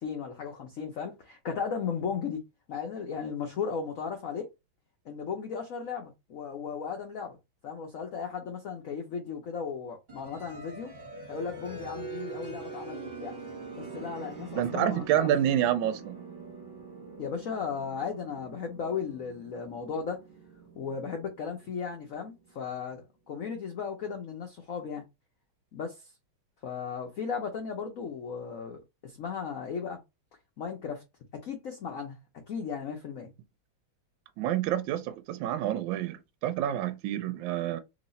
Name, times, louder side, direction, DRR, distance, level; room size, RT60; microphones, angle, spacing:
voice 1, 0.0-2.4 2.7-4.5 5.1-7.4 7.6-10.9 11.3-13.3 13.8-15.3 17.2-20.2 20.8-25.0 25.7-26.1 26.6-30.0 30.6-31.0 31.3-32.1 32.5-33.3, left 6 dB, 70° left, 0.8 m, -36 dB
sound 1, 10.1-22.6, right 4 dB, 30° right, 1.0 m, -44 dB
voice 2, 14.6-16.2 34.4-37.8, right 11 dB, 75° right, 1.2 m, -28 dB
3.1 x 2.9 x 4.0 m
omnidirectional pair, 2.3 m